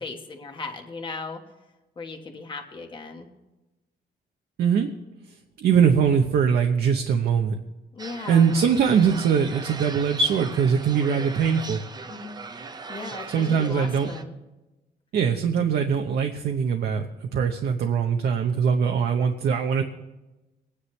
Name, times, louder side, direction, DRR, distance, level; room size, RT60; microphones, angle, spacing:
voice 1, 0.0-1.4 2.0-3.3 7.9-8.6 12.1-12.4 12.9-14.4 15.5-15.6, left 3 dB, 30° left, 3 dB, 1.4 m, -37 dB
voice 2, 4.6-4.9 5.6-7.5 8.3-11.8 13.3-14.1 15.1-17.1 17.3-19.8, right 7 dB, 65° right, 3 dB, 0.9 m, -22 dB
sound 1, 8.0-14.2, right 4 dB, 25° right, 0.6 m, -39 dB
23.5 x 9.9 x 3.3 m, 1.0 s
cardioid pair, 160°, 17 cm